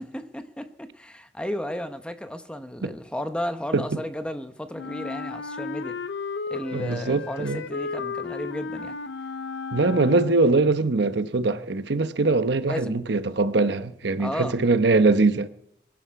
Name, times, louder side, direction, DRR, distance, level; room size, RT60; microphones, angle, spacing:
voice 1, 0.1-6.0 6.5-9.0 12.7-12.9 14.2-14.6, equal, 5° left, 0.9 m, -33 dB
Wind instrument woodwind instrument, 4.7-10.6, left 4 dB, 75° left, 0.7 m, -34 dB
voice 2, 6.7-7.6 9.7-15.5, right 3 dB, 70° right, 0.9 m, -22 dB
23.0 x 10.5 x 4.8 m
head